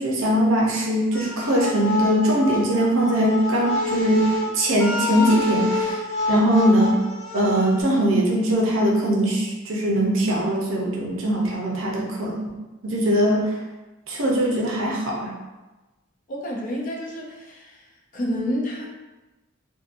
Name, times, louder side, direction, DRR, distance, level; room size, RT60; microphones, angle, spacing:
voice 1, 0.0-6.0 6.3-7.0 7.3-12.5 12.8-13.5 14.1-15.3, equal, 70° right, -2 dB, 0.6 m, -21 dB
sound 1, 1.1-7.8, left 2 dB, 80° left, 0.6 m, -27 dB
voice 2, 16.3-17.9 18.1-18.9, equal, 40° left, -1 dB, 0.4 m, -29 dB
2.8 x 2.2 x 2.5 m, 1.1 s
head